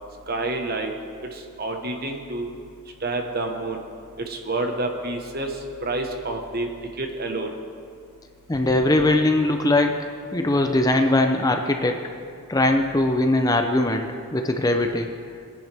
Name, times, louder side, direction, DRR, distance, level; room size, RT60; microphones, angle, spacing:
voice 1, 0.3-0.9 1.2-2.5 3.0-3.8 4.2-7.6, right 2 dB, 45° right, 3 dB, 1.2 m, -29 dB
voice 2, 8.5-9.9 10.3-12.0 12.5-15.1, left 2 dB, 15° left, 4 dB, 0.5 m, -20 dB
20.0 x 10.5 x 3.4 m, 2.3 s
head